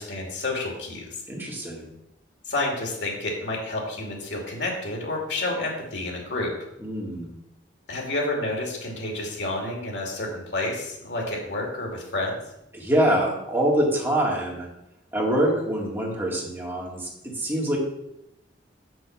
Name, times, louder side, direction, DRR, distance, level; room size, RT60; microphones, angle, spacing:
voice 1, 0.0-1.2 2.5-6.5 7.9-12.4, left 2 dB, 70° left, 0 dB, 2.5 m, -29 dB
voice 2, 1.3-1.9 6.8-7.3 12.7-14.7 15.1-17.8, right 1 dB, 10° right, -3 dB, 2.1 m, -25 dB
6.8 x 6.2 x 5.9 m, 0.84 s
head